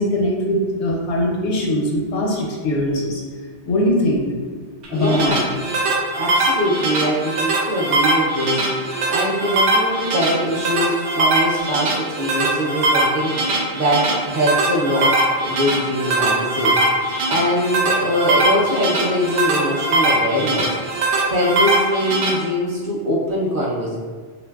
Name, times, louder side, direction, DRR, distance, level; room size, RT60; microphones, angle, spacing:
voice 1, 0.0-3.2 3.6-4.2 4.9-5.4, left 1 dB, 80° left, -1 dB, 0.9 m, -21 dB
sound 1, 4.8-22.3, right 2 dB, 85° right, 0.9 m, -21 dB
voice 2, 4.9-5.4 6.2-20.7 20.9-24.0, equal, 60° right, -5 dB, 0.6 m, -22 dB
3.0 x 2.5 x 2.3 m, 1.5 s
omnidirectional pair, 1.2 m